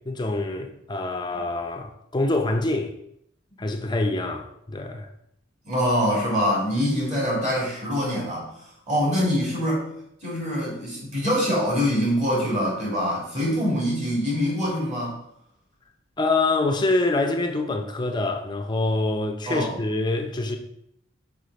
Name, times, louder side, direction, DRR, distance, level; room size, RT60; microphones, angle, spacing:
voice 1, 0.1-2.9 3.6-5.1 16.2-20.6, left 2 dB, 20° left, 0.5 m, -25 dB
voice 2, 5.6-8.5 8.9-9.8 10.2-15.1 19.5-19.7, equal, 35° right, 2.6 m, -24 dB
4.9 x 4.9 x 4.0 m
head